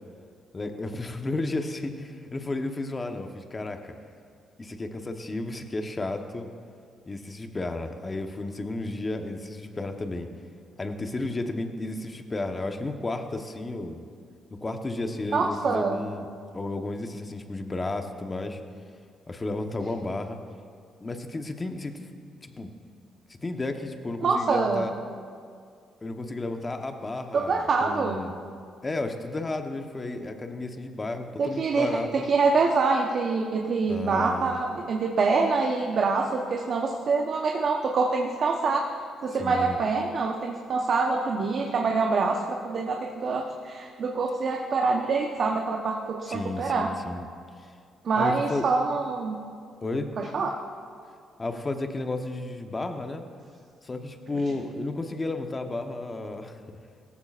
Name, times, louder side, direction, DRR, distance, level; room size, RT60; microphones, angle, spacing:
voice 1, 0.5-4.0 4.6-6.5 7.1-10.3 10.8-14.0 14.6-16.3 16.5-18.6 19.3-20.4 21.0-22.0 22.4-22.7 23.4-24.9 26.0-28.3 28.8-32.3 33.9-34.6 39.4-39.8 46.3-47.3 48.1-48.6 49.8-50.1 51.4-53.2 53.8-56.8, left 2 dB, 25° left, 5 dB, 1.1 m, -33 dB
voice 2, 15.3-16.0 24.2-24.9 27.3-28.2 31.4-31.9 32.1-38.8 39.2-46.9 48.0-49.4 50.2-50.6, right 4 dB, 55° right, 1 dB, 1.0 m, -25 dB
17.5 x 14.5 x 2.5 m, 2.2 s
cardioid pair, 90°, 0 cm